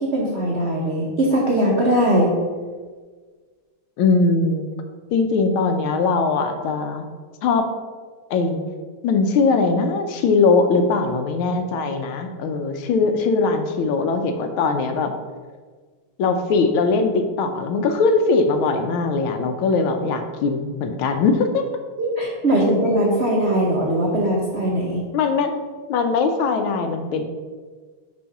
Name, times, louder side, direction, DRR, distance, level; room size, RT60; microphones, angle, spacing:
voice 1, 0.0-2.3 22.0-25.0, right 1 dB, 75° right, -2 dB, 0.6 m, -20 dB
voice 2, 4.0-4.7 5.1-7.0 7.4-7.7 8.3-8.6 9.0-15.1 16.2-21.6 25.1-25.5 25.9-27.2, left 4 dB, 75° left, 6 dB, 1.4 m, -20 dB
6.3 x 3.1 x 5.7 m, 1.5 s
omnidirectional pair, 2.4 m